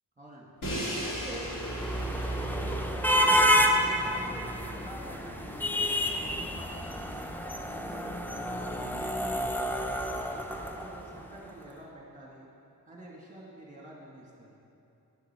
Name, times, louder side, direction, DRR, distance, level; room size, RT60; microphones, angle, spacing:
voice 1, 0.2-0.5 1.0-3.6 3.9-7.3 7.6-9.7 10.3-12.5 12.9-14.6, right 1 dB, 20° right, -4 dB, 1.9 m, -47 dB
Crash cymbal, 0.6-6.6, equal, 60° left, 1.9 m, -40 dB
sound 1, 0.9-11.2, equal, 5° left, 0.5 m, -29 dB
8.3 x 6.6 x 4.4 m, 2.7 s
wide cardioid pair, 85°, 37 cm